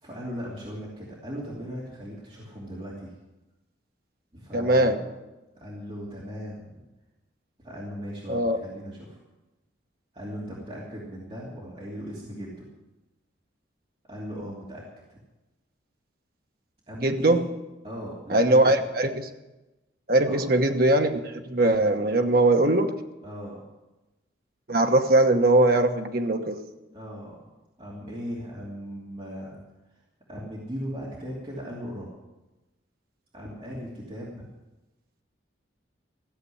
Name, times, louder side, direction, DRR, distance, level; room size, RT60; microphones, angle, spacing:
voice 1, 0.0-3.1 4.3-5.0 5.6-6.8 7.6-9.2 10.1-12.6 14.1-14.8 15.1-15.2 16.9-17.4 17.8-18.8 20.3-20.5 23.2-23.6 26.9-27.5 27.8-29.6 30.3-32.1 33.3-34.5, equal, 30° right, -6 dB, 2.8 m, -38 dB
voice 2, 4.5-5.0 8.3-8.6 17.0-17.5 18.3-19.3 20.1-22.9 24.7-26.6, right 2 dB, 50° right, 5 dB, 1.1 m, -21 dB
15.0 x 7.7 x 10.0 m, 1.1 s
head